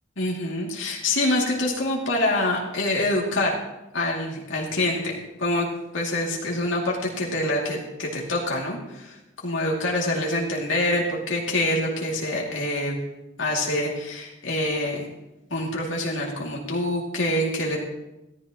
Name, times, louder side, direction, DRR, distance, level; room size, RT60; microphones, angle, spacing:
voice 1, 0.2-3.6 3.9-5.7 5.9-9.2 9.4-12.9 13.4-15.1 15.5-17.8, left 1 dB, 80° left, -3 dB, 2.5 m, -26 dB
15.0 x 13.5 x 3.0 m, 0.95 s
head